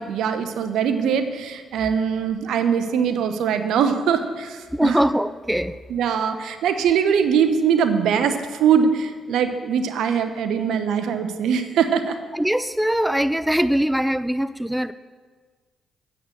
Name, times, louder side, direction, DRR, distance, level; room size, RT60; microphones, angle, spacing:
voice 1, 0.0-5.0 5.9-12.2, right 7 dB, 75° right, 9 dB, 0.8 m, -22 dB
voice 2, 4.7-5.8 12.3-14.9, equal, 5° right, 15 dB, 0.4 m, -22 dB
8.6 x 7.8 x 6.7 m, 1.5 s
supercardioid pair, 55°, 0 cm